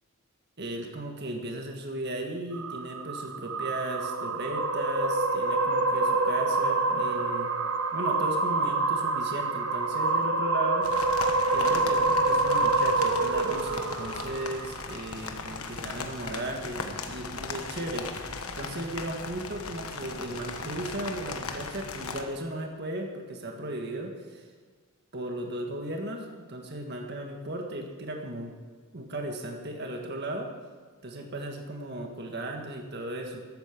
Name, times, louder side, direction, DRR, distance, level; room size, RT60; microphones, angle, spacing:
voice 1, 0.6-7.5 7.9-10.9 11.5-18.1 18.6-24.5 25.1-28.5 28.9-30.5 31.0-33.4, right 1 dB, 50° right, 2 dB, 1.7 m, -36 dB
sound 1, 2.5-15.0, right 3 dB, 80° right, 1.3 m, -27 dB
sound 2, 10.8-22.2, left 4 dB, 90° left, 1.3 m, -38 dB
13.0 x 8.7 x 7.3 m, 1.6 s
head